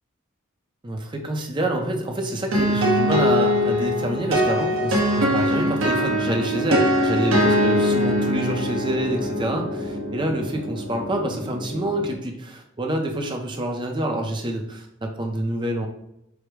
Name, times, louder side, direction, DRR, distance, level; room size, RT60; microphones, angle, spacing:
voice 1, 0.8-15.9, right 1 dB, 25° right, 3 dB, 0.6 m, -27 dB
sound 1, 2.5-12.1, equal, 80° right, 1.0 m, -22 dB
4.8 x 2.1 x 4.6 m, 0.79 s
head